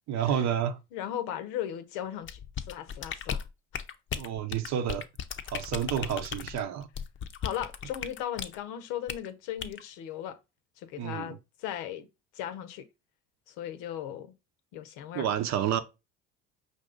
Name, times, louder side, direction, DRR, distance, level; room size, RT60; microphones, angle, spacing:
voice 1, 0.1-0.8 4.1-5.0 5.5-6.9 11.0-11.4 15.1-15.8, right 9 dB, 55° right, 0.7 m, -29 dB
voice 2, 0.9-2.4 2.7-3.4 3.7-3.8 7.4-10.4 10.8-12.1 12.3-12.9 13.5-14.3 14.7-15.3, left 11 dB, 80° left, 0.8 m, -37 dB
sound 1, 2.3-8.6 9.1-9.3 9.6-9.8, left 8 dB, 40° left, 0.6 m, -36 dB
5.2 x 2.6 x 3.7 m
supercardioid pair, 75°, 32 cm